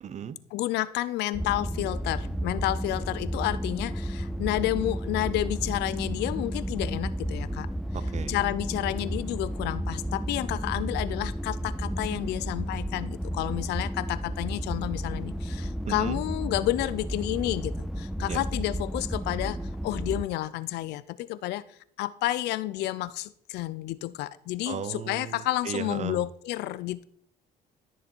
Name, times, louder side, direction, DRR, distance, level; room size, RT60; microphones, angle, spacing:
voice 1, 0.0-0.4 7.9-8.3 15.9-16.2 18.3-18.4 24.7-26.2, right 8 dB, 45° right, 0.8 m, -35 dB
voice 2, 0.5-2.2 2.4-3.9 4.4-7.7 8.3-11.3 12.0-13.1 13.4-15.3 15.9-17.6 18.2-19.5 19.8-21.0 21.4-21.6 22.0-23.1 23.5-24.8 25.1-27.0, left 15 dB, 80° left, 0.5 m, -30 dB
sound 1, 1.3-20.2, equal, ahead, 0.4 m, -32 dB
13.5 x 6.5 x 4.5 m
cardioid pair, 110°, 17 cm